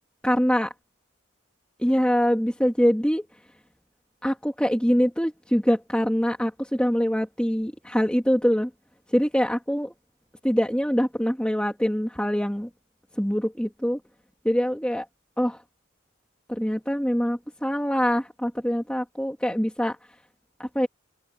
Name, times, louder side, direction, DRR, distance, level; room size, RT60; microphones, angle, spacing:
voice 1, 0.2-0.7 1.8-3.3 4.2-8.7 9.1-9.9 10.4-12.7 13.2-14.0 14.4-15.1 15.4-15.6 16.5-20.0 20.6-20.9, equal, 5° left, 1.9 m, -24 dB
open air
head